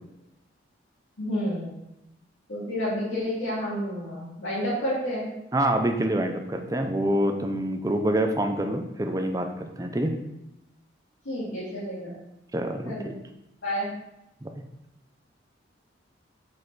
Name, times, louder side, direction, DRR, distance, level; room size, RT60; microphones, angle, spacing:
voice 1, 1.2-1.7 2.5-5.3 11.2-12.1 12.8-13.1 13.6-13.9, equal, 85° left, -9 dB, 2.4 m, -30 dB
voice 2, 5.5-10.2 12.5-13.1 14.4-14.6, right 1 dB, 20° right, 5 dB, 0.5 m, -26 dB
6.7 x 4.8 x 4.1 m, 0.88 s
head